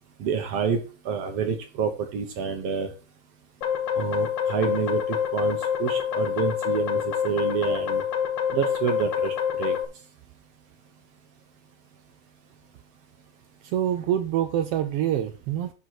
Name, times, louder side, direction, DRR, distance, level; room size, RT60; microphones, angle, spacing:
voice 1, 0.2-0.8 1.1-2.9 4.0-8.0 8.5-9.8, right 6 dB, 60° right, 1.9 m, -28 dB
sound 1, 3.6-9.8, left 8 dB, 60° left, 1.1 m, -27 dB
voice 2, 13.6-15.7, right 11 dB, 85° right, 1.3 m, -26 dB
9.0 x 5.5 x 4.6 m
omnidirectional pair, 3.5 m